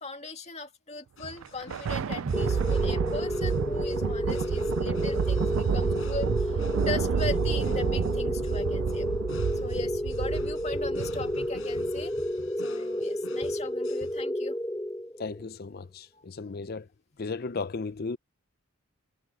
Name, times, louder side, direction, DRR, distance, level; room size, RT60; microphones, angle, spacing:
voice 1, 0.0-9.1 9.6-12.1 12.6-14.6, left 3 dB, 30° left, 2.3 m, -38 dB
sound 1, 1.2-14.2, left 2 dB, 65° left, 5.7 m, -48 dB
Thunder, 1.3-12.0, right 6 dB, 70° right, 0.4 m, -30 dB
sound 2, 2.3-15.5, left 1 dB, 10° left, 1.0 m, -31 dB
voice 2, 15.2-16.9 17.2-18.2, left 4 dB, 45° left, 0.5 m, -35 dB
head